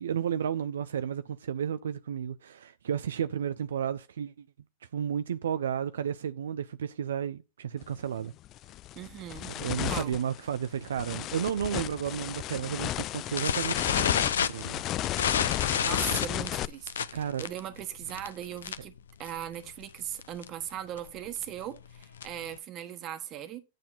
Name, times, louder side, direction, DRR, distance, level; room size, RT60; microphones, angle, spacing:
voice 1, 0.0-4.5 4.9-8.3 9.5-14.1 14.5-14.8 17.1-17.4, right 8 dB, 75° right, 0.4 m, -32 dB
sound 1, 7.8-8.0 8.4-16.7, left 14 dB, 35° left, 0.3 m, -34 dB
voice 2, 8.9-9.5 9.8-10.2 15.8-18.9 19.2-23.6, right 11 dB, 35° right, 1.3 m, -39 dB
sound 2, 13.4-19.0 19.3-19.5 19.8-19.9 20.2-20.5 21.0-22.5, left 8 dB, 80° left, 0.6 m, -30 dB
9.1 x 5.7 x 4.1 m
hypercardioid pair, 110°, 0 cm